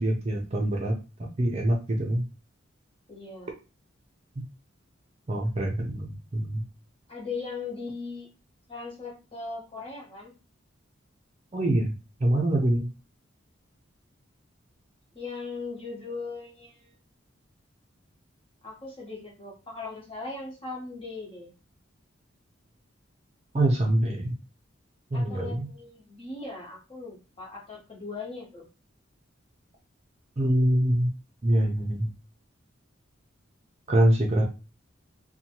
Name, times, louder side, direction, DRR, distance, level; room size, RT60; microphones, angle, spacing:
voice 1, 0.0-2.2 5.3-6.6 11.5-11.9 12.2-12.9 23.5-24.4 25.1-25.7 30.4-31.1 31.4-32.1 33.9-34.4, right 1 dB, 35° right, 0 dB, 0.5 m, -24 dB
voice 2, 3.1-3.5 7.1-8.3 8.7-10.3 15.1-16.9 18.6-21.5 25.1-28.7, left 4 dB, 30° left, -3 dB, 1.0 m, -39 dB
2.7 x 2.3 x 2.9 m, 0.31 s
head